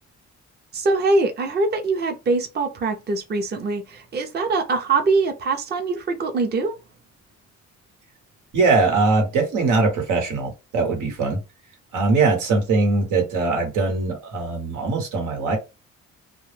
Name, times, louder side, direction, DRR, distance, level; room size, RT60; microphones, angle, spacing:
voice 1, 0.7-6.7, right 3 dB, 35° right, 0.6 m, -23 dB
voice 2, 8.5-11.4 11.9-15.6, right 3 dB, 85° right, 1.1 m, -21 dB
2.2 x 2.0 x 3.2 m
cardioid pair, 90°, 30 cm